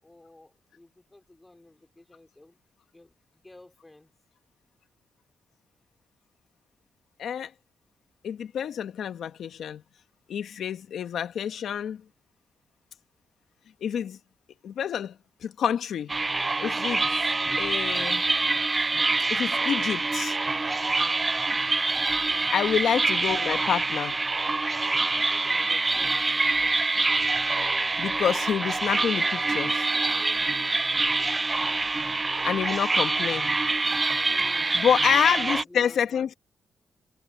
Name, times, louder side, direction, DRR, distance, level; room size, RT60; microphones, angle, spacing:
voice 1, 0.0-2.6 2.9-4.1 22.2-22.5 25.3-26.4 30.1-30.4 34.2-34.8 35.1-36.3, left 2 dB, 15° left, 4.4 m, -50 dB
voice 2, 7.2-7.5 8.2-9.8 10.3-12.0 13.8-14.2 14.6-16.1 16.6-17.0 17.6-18.2 19.3-20.4 22.5-24.2 28.0-29.9 32.4-33.5 34.7-36.3, left 8 dB, 75° left, 1.4 m, -27 dB
sound 1, 16.1-35.6, right 3 dB, 30° right, 0.3 m, -25 dB
cardioid pair, 75°, 0 cm